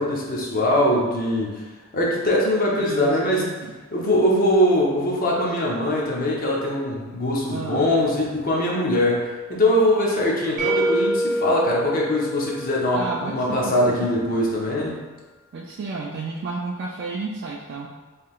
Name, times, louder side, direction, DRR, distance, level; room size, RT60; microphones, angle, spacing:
voice 1, 0.0-1.6 1.9-3.4 3.9-15.0, left 1 dB, 45° left, -3 dB, 0.7 m, -22 dB
voice 2, 2.8-3.8 7.5-7.9 12.9-14.1 15.5-17.9, right 3 dB, 55° right, -3 dB, 0.3 m, -32 dB
sound 1, 10.6-13.4, right 1 dB, 40° right, 0.9 m, -26 dB
3.7 x 3.3 x 2.4 m, 1.3 s
head